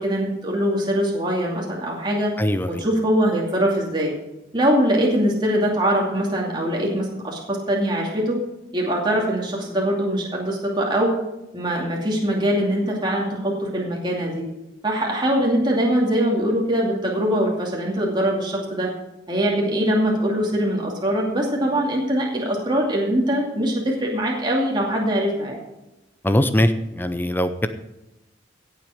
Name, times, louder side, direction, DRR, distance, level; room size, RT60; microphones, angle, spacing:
voice 1, 0.0-2.3 2.7-4.1 4.5-8.4 8.7-11.1 11.5-14.4 14.8-18.9 19.3-25.6, equal, 25° right, -2 dB, 2.5 m, -22 dB
voice 2, 2.4-2.8 26.2-27.7, left 1 dB, 10° left, 11 dB, 0.6 m, -21 dB
16.5 x 7.7 x 5.1 m, 0.95 s
head